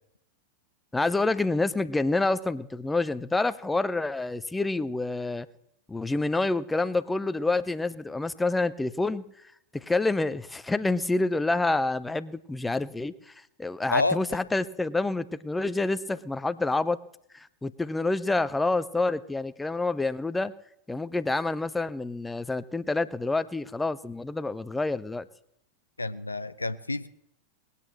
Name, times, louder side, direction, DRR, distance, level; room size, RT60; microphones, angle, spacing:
voice 1, 0.9-5.5 5.9-9.2 9.7-13.3 13.6-17.0 17.3-20.5 20.9-25.2, left 2 dB, 10° left, 15 dB, 0.6 m, -28 dB
voice 2, 26.0-27.1, left 2 dB, 80° left, 14 dB, 0.7 m, -28 dB
20.0 x 8.3 x 7.5 m, 0.75 s
figure-of-eight pair, 90°, 0 cm